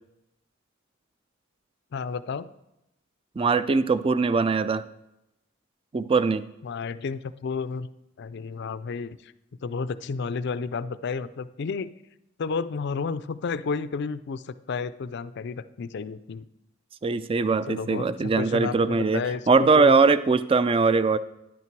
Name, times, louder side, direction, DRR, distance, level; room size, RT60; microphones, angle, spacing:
voice 1, 1.9-2.5 6.6-7.9 8.2-9.3 9.6-11.9 12.4-16.4 17.7-20.0, left 5 dB, 60° left, 15 dB, 0.4 m, -31 dB
voice 2, 3.4-4.8 5.9-6.5 17.0-21.2, right 4 dB, 30° right, 15 dB, 0.3 m, -21 dB
10.5 x 8.5 x 4.6 m, 0.87 s
head